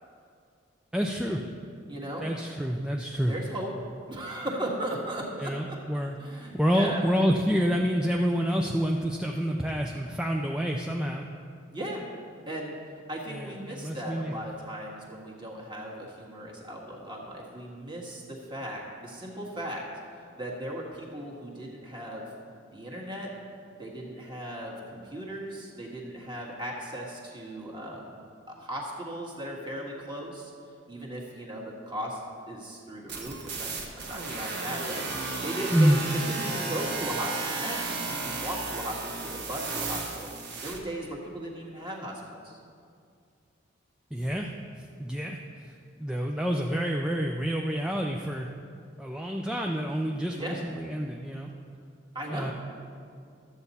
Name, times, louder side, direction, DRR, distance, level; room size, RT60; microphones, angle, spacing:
voice 1, 0.9-1.4 2.2-3.3 5.4-6.2 6.5-11.3 13.3-14.3 35.7-36.1 44.1-44.5 44.8-45.7 46.0-48.5 49.0-51.5 52.3-52.5, equal, 5° right, 0 dB, 0.4 m, -28 dB
voice 2, 1.9-2.3 3.3-3.7 4.1-5.8 6.2-7.1 11.7-12.0 12.5-12.8 13.1-19.8 20.4-22.2 22.7-23.3 23.8-28.1 28.5-30.5 30.9-32.2 32.5-35.0 35.4-40.3 40.6-42.6 50.4-50.6 52.1-52.5, right 1 dB, 25° right, -2 dB, 1.6 m, -37 dB
sound 1, 33.1-40.8, right 3 dB, 55° right, 1.2 m, -34 dB
13.0 x 8.0 x 4.2 m, 2.4 s
head